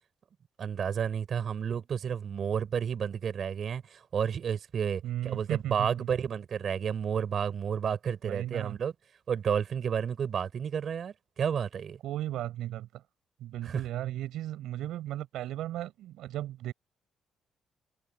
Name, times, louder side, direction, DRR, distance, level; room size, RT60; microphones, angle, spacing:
voice 1, 0.6-8.9 9.3-12.0 13.6-13.8, right 7 dB, 55° right, 7.9 m, -31 dB
voice 2, 5.0-6.1 8.2-8.8 12.0-13.0 13.4-16.7, right 13 dB, 85° right, 7.4 m, -35 dB
cardioid pair, 90°, 0 cm